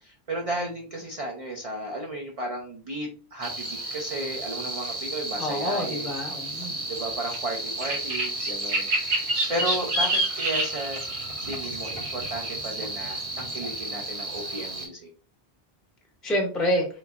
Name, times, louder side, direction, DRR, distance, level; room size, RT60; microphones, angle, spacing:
voice 1, 0.0-6.2 6.9-11.0 11.5-15.1, right 1 dB, 45° right, 1 dB, 0.5 m, -34 dB
sound 1, 3.4-14.9, right 1 dB, 90° right, 1.6 m, -30 dB
voice 2, 5.4-6.8 16.2-16.9, equal, ahead, 0 dB, 0.6 m, -27 dB
3.6 x 2.6 x 2.4 m, 0.38 s
omnidirectional pair, 1.1 m